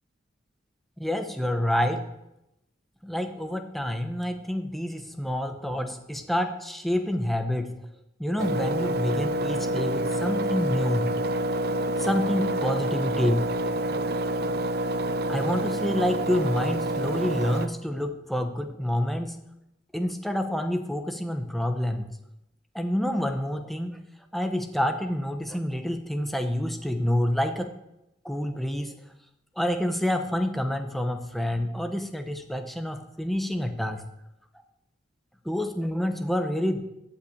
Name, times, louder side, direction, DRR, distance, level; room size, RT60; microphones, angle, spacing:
voice 1, 1.0-2.1 3.0-7.7 8.2-11.1 12.0-13.4 15.3-19.4 19.9-22.1 22.7-24.0 24.3-27.7 28.2-29.0 29.6-34.0 35.4-36.8, left 1 dB, ahead, 6 dB, 1.0 m, -28 dB
Engine, 8.4-17.7, right 1 dB, 55° right, 0.6 m, -27 dB
14.5 x 5.8 x 8.6 m, 0.88 s
head